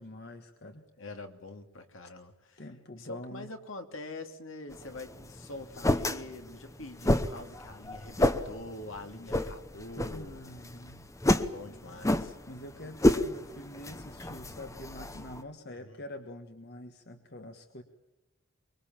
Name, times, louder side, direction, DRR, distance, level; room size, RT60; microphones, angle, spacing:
voice 1, 0.0-0.8 2.6-3.5 10.1-11.1 11.7-12.2 12.5-17.8, left 1 dB, 50° left, 6 dB, 1.6 m, -45 dB
voice 2, 1.0-2.6 3.0-10.4 11.3-12.4 15.7-16.0, left 2 dB, 65° left, 6 dB, 2.5 m, -44 dB
sound 1, 4.7-15.4, left 1 dB, 15° left, 1.0 m, -31 dB
24.5 x 22.5 x 7.4 m, 1.0 s
head